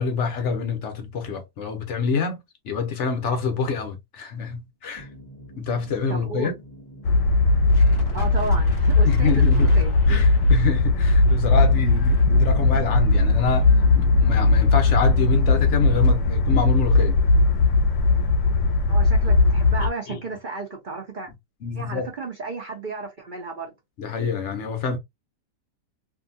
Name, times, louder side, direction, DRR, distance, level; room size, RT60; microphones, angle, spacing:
voice 1, 0.0-5.1 5.6-6.6 9.0-9.7 10.1-17.2 19.8-20.2 21.6-22.1 24.0-25.0, left 5 dB, 60° left, 0.8 m, -26 dB
sound 1, 4.9-16.1, right 1 dB, 30° left, 0.4 m, -40 dB
voice 2, 6.1-6.5 8.1-9.9 12.3-12.4 18.9-21.3 21.7-23.7, right 3 dB, 50° right, 0.6 m, -33 dB
sound 2, 7.0-19.9, left 3 dB, 85° left, 1.2 m, -18 dB
2.7 x 2.5 x 2.6 m
omnidirectional pair, 1.8 m